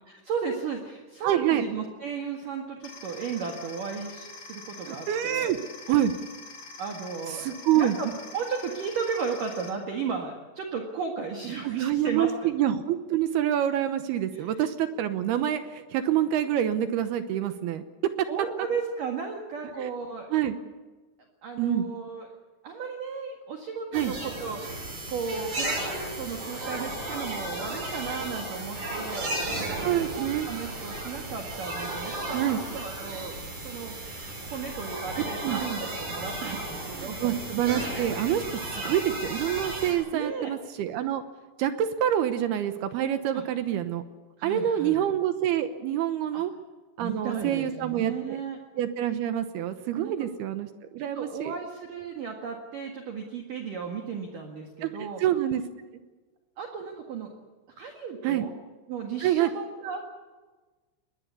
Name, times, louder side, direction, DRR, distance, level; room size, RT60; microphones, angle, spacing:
voice 1, 0.1-5.5 6.8-7.4 7.7-12.3 14.3-14.5 18.3-20.3 21.4-22.3 22.6-29.3 29.6-32.4 32.7-34.0 34.4-37.4 40.1-40.5 43.3-43.4 44.4-45.0 46.3-46.4 47.0-48.6 50.0-50.1 51.0-55.2 56.6-57.3 57.8-58.5 58.9-60.1, right 5 dB, 55° right, 2 dB, 2.8 m, -35 dB
voice 2, 1.2-1.6 4.9-5.6 5.9-6.1 7.3-8.0 11.6-18.3 19.8-19.9 20.3-20.6 21.6-21.9 23.9-24.1 29.8-30.5 32.3-32.6 35.4-35.6 37.0-41.2 41.6-44.0 44.4-46.5 47.0-48.4 48.8-50.7 50.9-51.5 54.8-55.6 58.2-58.5 59.2-59.5, right 11 dB, 75° right, 9 dB, 2.4 m, -27 dB
sound 1, 2.8-9.7, left 3 dB, 55° left, 5.0 m, -45 dB
sound 2, 23.9-39.9, right 1 dB, 40° right, 7.8 m, -34 dB
22.5 x 20.5 x 8.3 m, 1.3 s
omnidirectional pair, 5.8 m